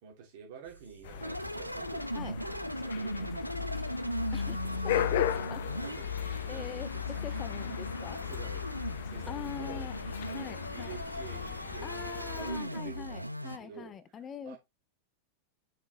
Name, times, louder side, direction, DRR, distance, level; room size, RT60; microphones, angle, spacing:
voice 1, 0.0-3.9 5.8-6.1 6.4-6.7 6.9-7.4 8.2-8.7 9.0-9.9 10.3-14.6, right 7 dB, 50° right, 3.1 m, -49 dB
sound 1, 0.6-13.1, right 4 dB, 90° left, 1.8 m, -57 dB
sound 2, 1.0-12.6, left 10 dB, 55° left, 0.8 m, -36 dB
sound 3, 1.2-13.6, right 1 dB, 90° right, 0.4 m, -39 dB
voice 2, 4.8-5.6 6.5-6.9 7.2-8.2 9.3-9.9 10.3-11.0 11.8-14.6, left 7 dB, 25° left, 0.6 m, -43 dB
6.6 x 5.4 x 3.8 m
figure-of-eight pair, 90°, 0 cm